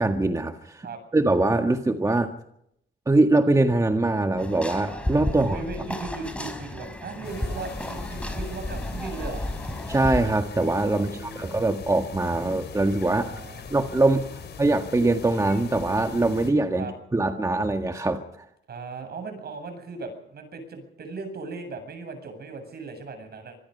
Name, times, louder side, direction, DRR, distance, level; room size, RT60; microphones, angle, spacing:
voice 1, 0.0-0.9 1.1-2.3 3.0-5.6 9.9-13.2 13.7-18.4, right 2 dB, 15° right, 5 dB, 1.7 m, -23 dB
sound 1, 4.4-10.2, left 1 dB, 5° left, 5.3 m, -32 dB
voice 2, 5.4-9.4 10.9-11.5 13.1-13.7 16.8-16.9 18.7-23.6, right 4 dB, 55° right, 7 dB, 7.9 m, -37 dB
sound 2, 7.2-16.5, left 6 dB, 60° left, 4.8 m, -41 dB
26.0 x 20.5 x 5.6 m, 0.77 s
cardioid pair, 90°, 20 cm